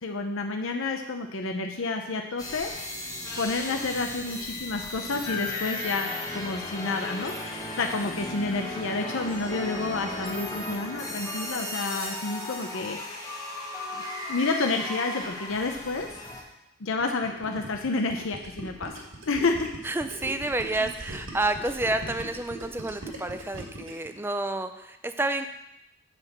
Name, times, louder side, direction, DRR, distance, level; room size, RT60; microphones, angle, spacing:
voice 1, 0.0-3.0 3.4-13.3 13.9-14.0 14.3-16.1 16.8-19.7 20.8-20.9, left 3 dB, 65° left, 4 dB, 0.7 m, -30 dB
sound 1, 2.4-16.4, left 2 dB, 15° left, 1.4 m, -35 dB
Gurgling, 17.0-24.1, right 1 dB, 70° right, 2.1 m, -40 dB
voice 2, 19.8-25.5, right 2 dB, 10° right, 8 dB, 0.4 m, -29 dB
7.7 x 5.1 x 7.4 m, 0.87 s
head